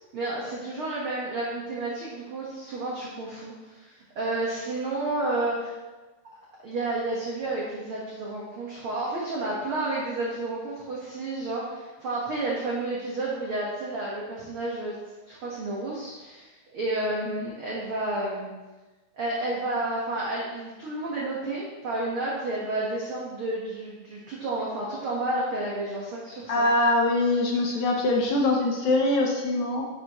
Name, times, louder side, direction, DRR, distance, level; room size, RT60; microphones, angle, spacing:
voice 1, 0.1-5.7 6.6-15.0 15.3-18.5 19.1-26.7, right 2 dB, 55° right, -5 dB, 1.6 m, -31 dB
voice 2, 26.5-29.8, left 2 dB, 70° left, 0 dB, 1.9 m, -23 dB
10.5 x 8.3 x 3.1 m, 1.2 s
omnidirectional pair, 4.3 m